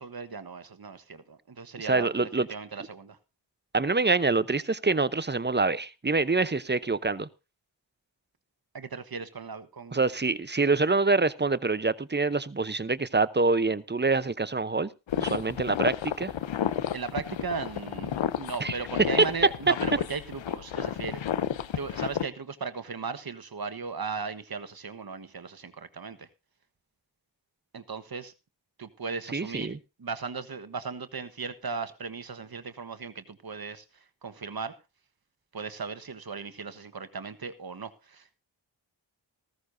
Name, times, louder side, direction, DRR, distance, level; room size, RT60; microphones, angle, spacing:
voice 1, 0.0-3.2 8.7-10.0 16.9-21.2 21.7-26.3 27.7-28.3 28.8-34.7 35.5-38.4, right 5 dB, 50° right, 1.4 m, -37 dB
voice 2, 1.8-2.5 3.7-7.3 9.9-14.9 15.2-16.3 18.6-18.8 29.3-29.8, right 3 dB, 25° right, 0.8 m, -26 dB
sound 1, 15.1-22.2, left 9 dB, 70° left, 0.8 m, -31 dB
15.5 x 14.5 x 2.7 m
cardioid pair, 40°, 46 cm